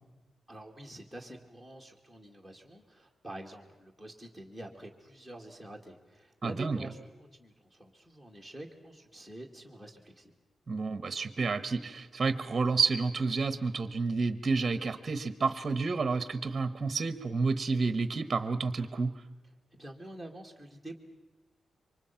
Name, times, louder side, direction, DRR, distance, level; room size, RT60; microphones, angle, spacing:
voice 1, 0.5-7.1 7.4-10.3 19.8-21.0, right 1 dB, 5° left, -1 dB, 2.2 m, -47 dB
voice 2, 6.4-6.8 10.7-19.2, right 4 dB, 30° right, 12 dB, 1.1 m, -30 dB
28.0 x 24.5 x 5.8 m, 1.2 s
wide cardioid pair, 145°, 0 cm